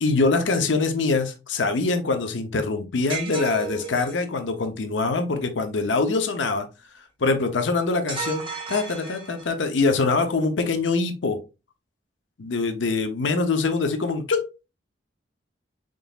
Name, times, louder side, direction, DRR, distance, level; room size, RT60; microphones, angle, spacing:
voice 1, 0.0-6.7 6.9-11.4 12.4-14.5, left 3 dB, 85° left, 0.7 m, -24 dB
sound 1, 3.1-4.3 8.1-9.7, right 4 dB, 30° right, 1.0 m, -33 dB
3.8 x 3.7 x 2.3 m
head